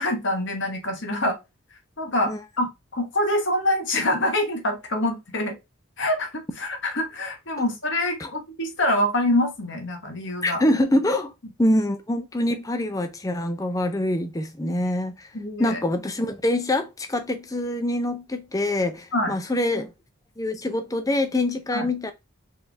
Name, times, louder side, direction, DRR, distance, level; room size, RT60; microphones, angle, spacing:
voice 1, 0.0-1.4 2.0-5.6 6.0-10.6 15.3-15.8 19.1-19.3 21.7-21.9, left 1 dB, 55° left, 1.2 m, -25 dB
voice 2, 10.4-11.3 11.6-15.3 15.6-19.9 20.4-22.1, left 1 dB, 15° left, 0.5 m, -25 dB
4.6 x 3.4 x 3.4 m
head